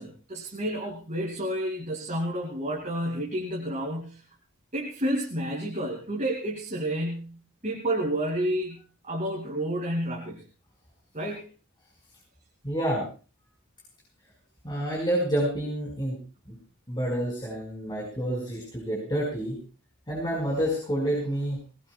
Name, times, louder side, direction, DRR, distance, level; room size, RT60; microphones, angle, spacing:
voice 1, 0.0-4.3 4.7-10.4 11.1-11.5, right 1 dB, 35° right, 0 dB, 2.5 m, -30 dB
voice 2, 12.6-13.0 14.6-16.2 16.5-16.6 16.9-19.6 20.1-21.6, right 1 dB, 20° left, -2 dB, 5.1 m, -28 dB
21.5 x 19.0 x 2.3 m, 0.35 s
head